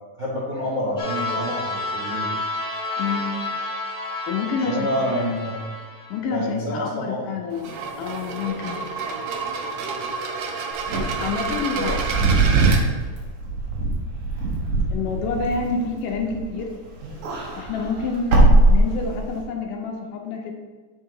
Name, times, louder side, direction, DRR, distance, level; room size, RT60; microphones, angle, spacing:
voice 1, 0.2-2.3 4.6-5.7 6.3-7.1 11.7-12.0 12.2-12.4, equal, 50° right, -8 dB, 1.5 m, -28 dB
sound 1, 1.0-6.2, left 2 dB, 50° left, 0.8 m, -30 dB
voice 2, 3.0-3.4 4.3-4.9 6.1-8.8 11.2-12.0 14.9-16.7 17.6-20.5, left 4 dB, 75° left, 2 dB, 2.3 m, -28 dB
sound 2, 7.5-12.8, right 5 dB, 85° right, 1.4 m, -29 dB
Wind / Car, 10.8-16.6 17.0-19.4, right 2 dB, 65° right, 2.6 m, -21 dB
7.9 x 5.6 x 3.8 m, 1.4 s
omnidirectional pair, 3.9 m